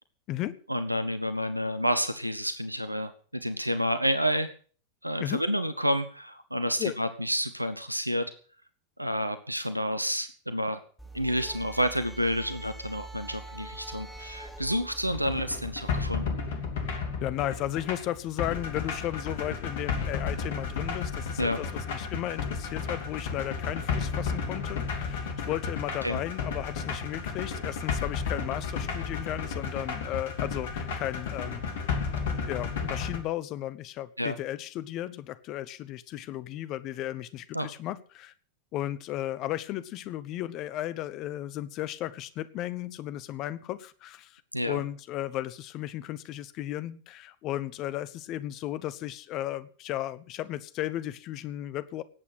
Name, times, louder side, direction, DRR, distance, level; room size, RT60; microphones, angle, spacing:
voice 1, 0.7-4.5 5.0-8.3 9.0-10.8 11.1-16.4 21.4-21.6 26.0-26.2 34.2-34.3 37.5-37.7 44.5-44.8, equal, 90° right, 11 dB, 0.9 m, -29 dB
sound 1, 11.0-16.0, right 2 dB, ahead, 3.1 m, -44 dB
sound 2, 15.1-33.2, left 5 dB, 55° left, 2.8 m, -33 dB
voice 2, 17.2-31.6 32.5-38.3 38.7-44.4 44.7-52.0, left 13 dB, 35° left, 16 dB, 0.9 m, -35 dB
18.5 x 8.5 x 6.2 m, 0.42 s
figure-of-eight pair, 90°, 0 cm